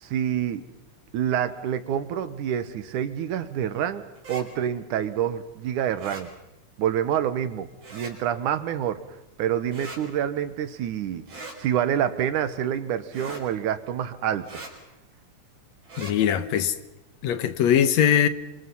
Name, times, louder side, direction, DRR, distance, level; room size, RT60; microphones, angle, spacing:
voice 1, 0.0-0.7 1.1-6.3 6.8-9.0 9.4-11.2 11.6-14.5, right 10 dB, 85° right, 2.8 m, -27 dB
sound 1, 4.2-4.4 6.0-6.2 7.8-8.1 9.7-10.0 11.3-11.6 13.1-13.4 14.4-14.7 15.8-16.1, right 2 dB, 55° right, 5.4 m, -40 dB
voice 2, 16.0-16.8 17.2-18.3, left 9 dB, 70° left, 2.2 m, -21 dB
26.0 x 25.5 x 5.6 m
omnidirectional pair, 3.4 m